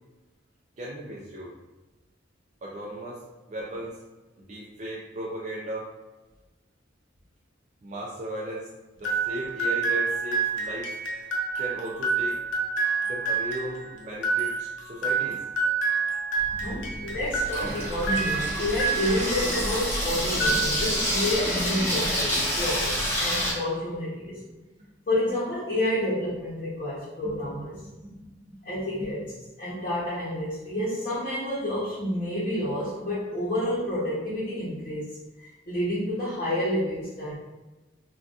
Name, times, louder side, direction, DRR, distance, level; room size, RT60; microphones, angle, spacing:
voice 1, 0.8-1.5 2.6-3.2 3.5-4.0 4.5-5.9 7.8-8.7 9.0-10.9 11.6-12.4 13.1-15.4 16.5-17.1 17.6-17.8 27.2-27.3 27.7-28.6 29.0-29.3, equal, 40° right, -5 dB, 0.4 m, -36 dB
sound 1, 9.0-19.9 20.3-21.1, right 4 dB, 90° left, 0.6 m, -28 dB
Water tap faucet / Sink (filling or washing), 16.4-23.5, equal, 10° left, 0.8 m, -28 dB
voice 2, 16.6-24.4 25.1-27.7 28.6-29.3 29.6-35.1 35.4-37.4, left 1 dB, 40° left, -9 dB, 0.8 m, -29 dB
3.8 x 2.3 x 2.4 m, 1.1 s
head